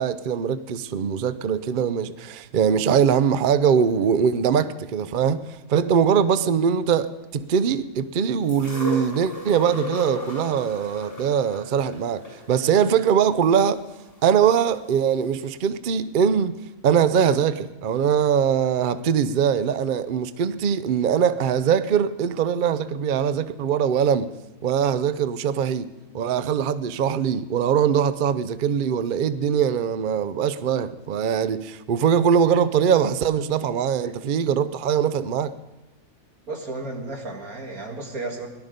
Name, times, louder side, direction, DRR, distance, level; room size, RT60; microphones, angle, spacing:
voice 1, 0.0-13.8 14.2-24.3 24.6-35.5, right 7 dB, 55° right, 0.6 m, -22 dB
sound 1, 8.5-14.5 15.4-15.5, left 2 dB, 25° left, 7.0 m, -36 dB
voice 2, 36.5-38.5, right 2 dB, 90° right, 2.3 m, -33 dB
17.5 x 12.0 x 5.1 m
omnidirectional pair, 1.5 m